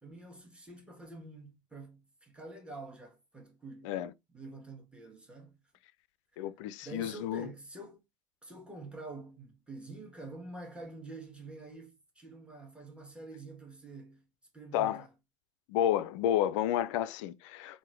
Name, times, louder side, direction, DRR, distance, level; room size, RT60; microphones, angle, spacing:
voice 1, 0.0-4.0 4.3-5.6 6.8-8.0 8.4-14.2 14.5-15.1, right 2 dB, 5° right, 1.3 m, -47 dB
voice 2, 6.4-7.5 14.7-15.0 15.7-17.8, left 11 dB, 60° left, 0.4 m, -31 dB
3.6 x 2.5 x 3.2 m
figure-of-eight pair, 70°, 17 cm